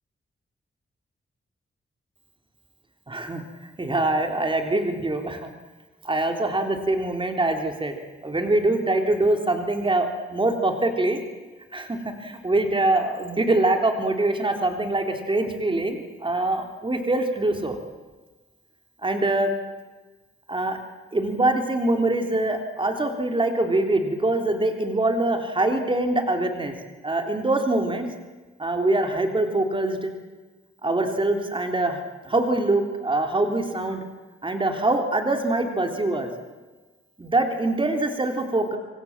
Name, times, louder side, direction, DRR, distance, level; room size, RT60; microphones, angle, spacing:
voice 1, 3.1-3.4 3.8-5.5 6.0-7.9 8.2-11.2 11.7-17.8 19.0-19.5 20.5-20.8 21.1-26.7 27.0-28.1 28.6-30.1 30.8-32.0 32.2-34.0 34.4-36.3 37.2-38.8, right 2 dB, 25° right, 4 dB, 3.4 m, -24 dB
26.0 x 25.5 x 7.3 m, 1.3 s
wide cardioid pair, 140°, 21 cm